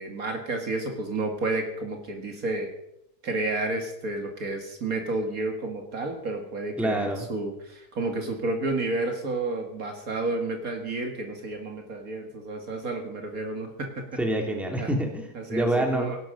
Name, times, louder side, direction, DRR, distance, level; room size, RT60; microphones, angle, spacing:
voice 1, 0.0-2.7 3.2-14.1 14.8-14.9 15.3-16.2, right 2 dB, 65° right, 3 dB, 2.4 m, -31 dB
voice 2, 6.8-7.2 14.2-16.1, right 1 dB, ahead, 1 dB, 2.6 m, -27 dB
17.0 x 11.5 x 5.2 m, 0.82 s
omnidirectional pair, 1.6 m